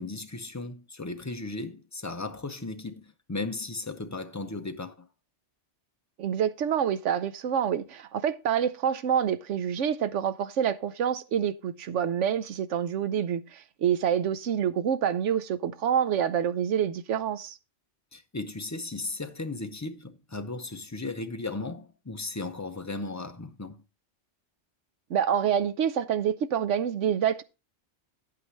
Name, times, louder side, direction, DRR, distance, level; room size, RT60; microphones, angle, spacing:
voice 1, 0.0-5.1 18.1-23.8, left 3 dB, 20° left, 0.5 m, -36 dB
voice 2, 6.2-17.6 25.1-27.4, right 8 dB, 90° right, 1.1 m, -27 dB
9.6 x 8.5 x 3.1 m
omnidirectional pair, 1.2 m